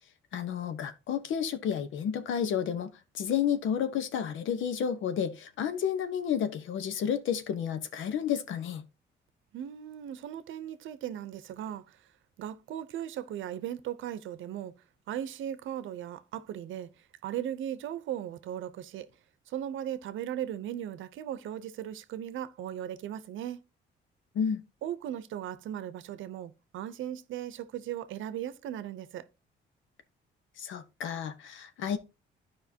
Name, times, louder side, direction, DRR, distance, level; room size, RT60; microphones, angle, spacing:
voice 1, 0.3-8.8 24.3-24.6 30.6-32.0, left 8 dB, 75° left, 1.0 m, -31 dB
voice 2, 9.5-12.0 12.4-14.7 15.1-16.9 17.2-19.1 19.5-23.6 24.8-29.2, right 10 dB, 80° right, 0.7 m, -37 dB
12.0 x 5.0 x 2.8 m
cardioid pair, 90°, 20 cm